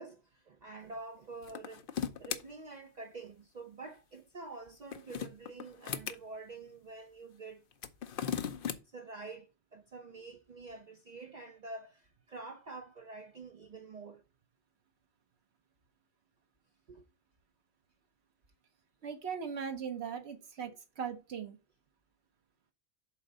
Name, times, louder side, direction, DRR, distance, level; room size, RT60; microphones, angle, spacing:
voice 1, 0.0-1.9 2.2-7.6 8.8-14.2 16.9-17.0, right 3 dB, 45° right, 0.7 m, -47 dB
sound 1, 1.4-2.4 4.7-6.2 7.7-8.8, left 8 dB, 60° left, 0.8 m, -37 dB
voice 2, 19.0-20.7 21.0-21.6, right 7 dB, 75° right, 1.4 m, -39 dB
7.2 x 3.9 x 5.4 m
omnidirectional pair, 1.1 m